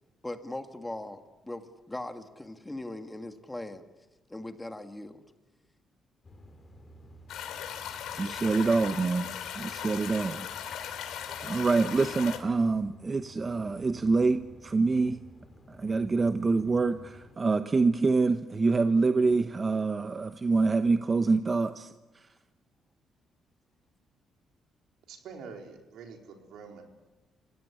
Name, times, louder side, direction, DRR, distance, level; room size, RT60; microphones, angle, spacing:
voice 1, 0.2-3.8 4.3-5.2, left 1 dB, 10° left, 7 dB, 1.9 m, -39 dB
sound 1, 6.2-17.4, left 1 dB, 30° left, 4.2 m, -53 dB
sound 2, 7.3-12.4, left 9 dB, 85° left, 2.9 m, -38 dB
voice 2, 8.2-10.8 11.4-15.2 15.7-21.9, right 3 dB, 30° right, 9 dB, 0.9 m, -26 dB
voice 3, 25.1-26.8, right 5 dB, 80° right, 2 dB, 4.2 m, -45 dB
27.0 x 16.0 x 10.0 m, 1.2 s
cardioid pair, 90°, 0 cm